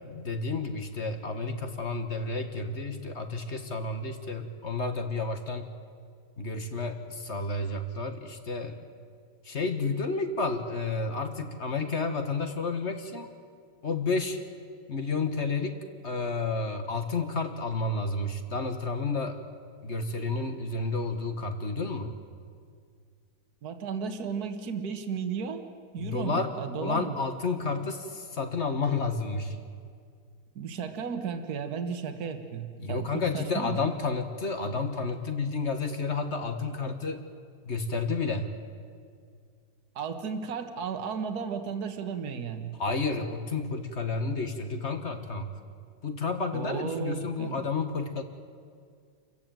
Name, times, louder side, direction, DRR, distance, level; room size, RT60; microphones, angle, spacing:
voice 1, 0.1-5.7 6.4-8.8 9.4-13.3 13.8-14.4 14.9-15.8 16.0-19.4 19.8-22.1 26.0-29.6 32.8-37.2 37.6-38.5 42.8-45.5 46.0-48.2, left 3 dB, 35° left, 7 dB, 1.5 m, -31 dB
voice 2, 23.6-25.7 25.9-27.2 30.6-33.9 40.0-42.7 46.5-47.7, right 6 dB, 50° right, 7 dB, 1.9 m, -34 dB
27.5 x 15.5 x 9.1 m, 2.1 s
omnidirectional pair, 2.2 m